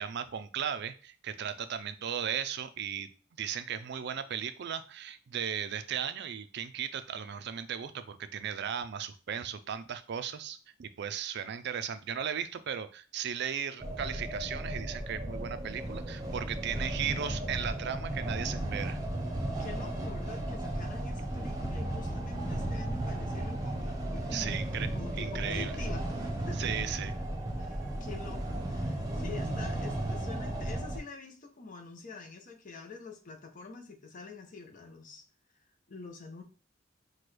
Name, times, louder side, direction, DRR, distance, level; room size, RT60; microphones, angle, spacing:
voice 1, 0.0-3.1 3.4-19.0 24.3-24.9 25.2-25.7 26.6-27.1, right 8 dB, 60° right, 11 dB, 0.4 m, -36 dB
sound 1, 13.8-31.0, right 1 dB, 20° right, 0.8 m, -35 dB
voice 2, 16.6-17.1 19.6-24.6 24.9-26.8 27.6-35.2 35.9-36.4, left 4 dB, 45° left, 4 dB, 0.7 m, -46 dB
6.0 x 2.3 x 3.2 m, 0.36 s
head